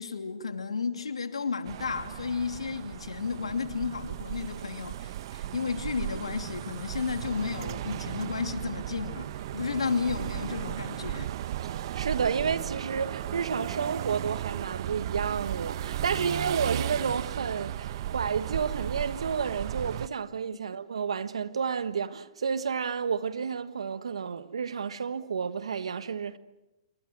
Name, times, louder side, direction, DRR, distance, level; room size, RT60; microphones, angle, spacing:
voice 1, 0.0-11.3, left 5 dB, 85° left, 2.7 m, -33 dB
sound 1, 1.6-20.1, right 12 dB, 55° right, 0.9 m, -35 dB
voice 2, 11.7-26.4, right 6 dB, 80° right, 1.5 m, -31 dB
27.5 x 25.5 x 6.3 m
hypercardioid pair, 125°, 3 cm